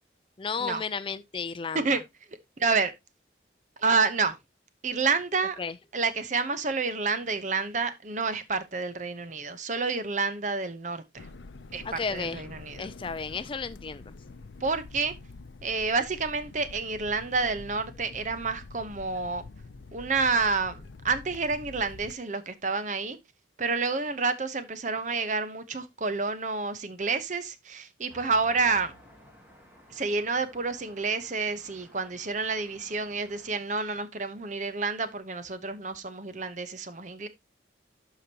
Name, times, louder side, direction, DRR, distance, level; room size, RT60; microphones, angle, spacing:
voice 1, 0.4-2.0 5.6-5.7 11.8-12.4 12.8-14.1, left 5 dB, 30° left, 0.4 m, -33 dB
voice 2, 2.6-2.9 3.8-4.3 4.8-5.6 5.9-11.3 11.7-12.9 14.6-15.1 15.6-19.4 19.9-23.2 23.6-28.9 29.9-37.3, right 4 dB, 40° right, 0.8 m, -29 dB
sound 1, 11.2-22.1, left 3 dB, 80° left, 0.6 m, -46 dB
Traffic noise roadway noise, 28.1-33.5, equal, 10° right, 2.1 m, -54 dB
12.0 x 5.0 x 2.9 m
head